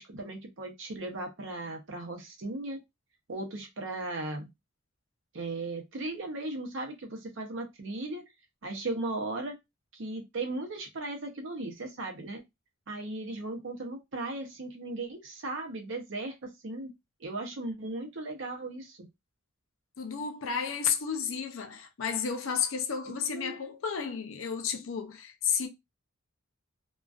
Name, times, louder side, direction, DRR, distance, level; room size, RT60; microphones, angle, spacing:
voice 1, 0.0-2.8 3.3-4.5 5.3-8.2 8.6-9.6 9.9-12.4 12.9-16.9 17.2-19.1 23.1-23.6, right 2 dB, 65° right, 0.7 m, -37 dB
voice 2, 20.0-25.7, left 7 dB, 70° left, 0.5 m, -32 dB
2.4 x 2.2 x 2.3 m
head